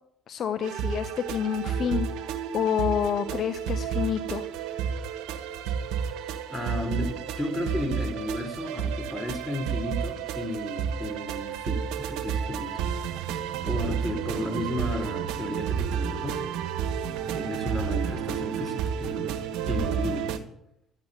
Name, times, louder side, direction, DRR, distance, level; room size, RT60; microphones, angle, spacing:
voice 1, 0.3-2.1 2.5-4.5, left 8 dB, 50° left, 9 dB, 0.8 m, -28 dB
sound 1, 0.6-20.4, right 7 dB, 70° right, 1.5 m, -31 dB
voice 2, 6.5-12.7 13.6-16.5 17.3-19.4 19.6-20.2, left 1 dB, 10° left, 5 dB, 4.2 m, -33 dB
12.5 x 8.7 x 9.0 m, 0.75 s
hypercardioid pair, 60°, 0 cm